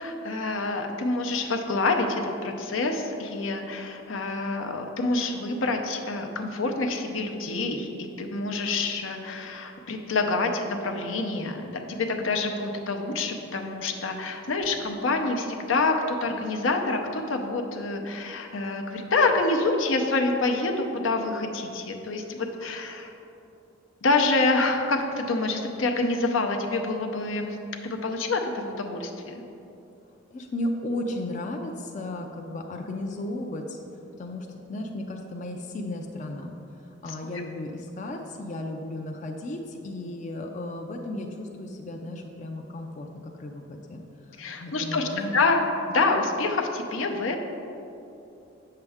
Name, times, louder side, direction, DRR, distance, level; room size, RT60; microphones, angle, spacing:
voice 1, 0.0-7.9 8.2-23.1 24.0-27.6 27.8-29.4 37.1-37.2 44.4-47.4, left 3 dB, 80° left, 4 dB, 0.7 m, -27 dB
voice 2, 30.3-33.8 34.2-36.5 37.0-44.0 44.3-45.4, left 1 dB, 40° left, 3 dB, 0.4 m, -34 dB
7.9 x 6.6 x 3.5 m, 2.8 s
head